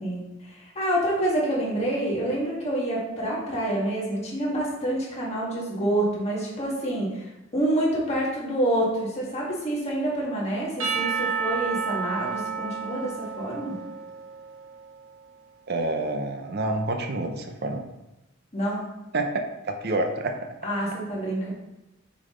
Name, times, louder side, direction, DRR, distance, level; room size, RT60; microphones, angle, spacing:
voice 1, 0.0-13.8 18.5-18.9 20.6-21.5, right 1 dB, 30° left, -5 dB, 1.8 m, -27 dB
Percussion / Church bell, 10.8-15.0, right 6 dB, 75° right, 1.2 m, -31 dB
voice 2, 15.7-17.8 19.1-19.4 19.8-20.4, right 2 dB, 50° right, 5 dB, 0.6 m, -27 dB
6.4 x 4.1 x 3.8 m, 0.96 s
head